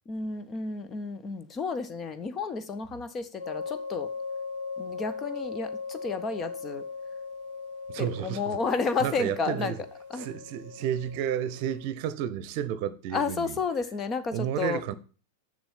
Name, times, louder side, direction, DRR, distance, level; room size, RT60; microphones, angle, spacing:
voice 1, 0.1-4.1 4.8-6.8 8.0-9.7 10.1-10.3 13.1-14.8, left 5 dB, 25° left, 0.8 m, -31 dB
sound 1, 3.4-11.9, left 4 dB, 60° left, 3.5 m, -39 dB
voice 2, 7.9-8.6 9.0-9.8 10.2-13.6 14.3-14.9, right 10 dB, 45° right, 0.8 m, -31 dB
7.1 x 6.6 x 7.2 m
figure-of-eight pair, 90°, 0 cm